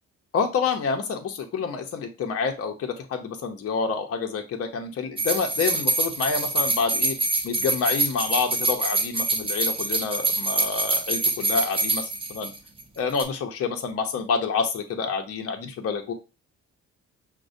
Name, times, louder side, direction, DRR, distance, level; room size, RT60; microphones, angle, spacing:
voice 1, 0.3-7.2 7.4-12.5 13.0-16.1, left 5 dB, 50° left, 4 dB, 0.7 m, -28 dB
sound 1, 5.2-12.8 13.1-13.2, right 3 dB, 20° right, 0.8 m, -25 dB
5.9 x 2.2 x 2.6 m, 0.29 s
cardioid pair, 90°, 30 cm